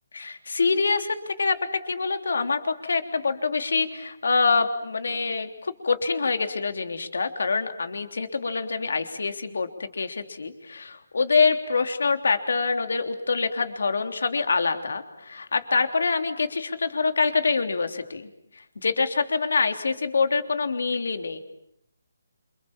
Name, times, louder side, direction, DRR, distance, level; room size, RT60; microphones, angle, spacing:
voice 1, 0.1-18.3 18.8-21.4, left 4 dB, 60° left, 7 dB, 3.3 m, -25 dB
28.5 x 27.5 x 7.4 m, 0.74 s
hypercardioid pair, 180°, 0 cm